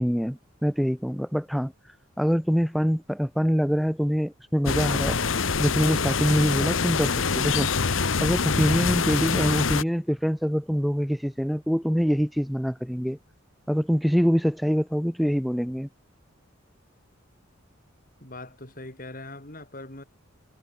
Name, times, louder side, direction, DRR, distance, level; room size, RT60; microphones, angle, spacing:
voice 1, 0.0-5.2 5.6-7.9 8.2-13.2 13.7-15.9, equal, ahead, 0.7 m, -25 dB
sound 1, 4.7-9.8, left 5 dB, 80° left, 1.1 m, -25 dB
voice 2, 18.2-20.0, left 2 dB, 45° left, 4.7 m, -41 dB
head